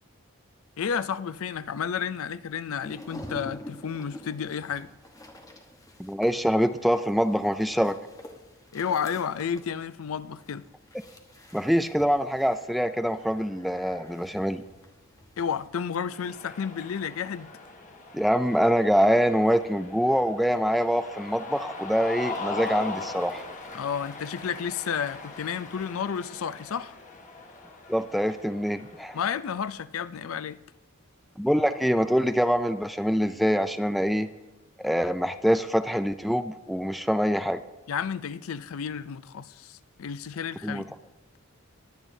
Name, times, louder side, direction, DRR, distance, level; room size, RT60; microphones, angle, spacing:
voice 1, 0.8-4.9 8.7-10.6 15.4-17.5 23.7-26.9 29.1-30.6 37.9-41.0, left 7 dB, 65° left, 0.4 m, -31 dB
sound 1, 2.8-15.7, left 1 dB, 15° left, 1.1 m, -47 dB
voice 2, 6.0-8.0 11.5-14.6 18.1-23.4 27.9-29.2 31.4-34.3 34.8-37.6 40.6-40.8, equal, ahead, 0.3 m, -24 dB
Cheering, 16.0-29.5, left 3 dB, 35° left, 1.3 m, -40 dB
21.0 x 8.8 x 2.7 m
head